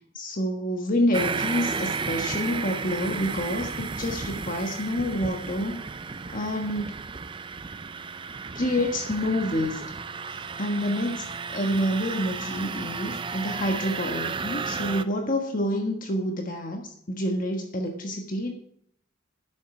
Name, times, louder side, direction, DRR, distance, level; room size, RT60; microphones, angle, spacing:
voice 1, 0.1-5.8 6.3-7.0 8.5-9.8 10.3-18.6, equal, 40° left, 3 dB, 1.3 m, -28 dB
sound 1, 1.1-15.0, right 5 dB, 25° right, 0.4 m, -33 dB
11.5 x 8.3 x 6.0 m, 0.69 s
head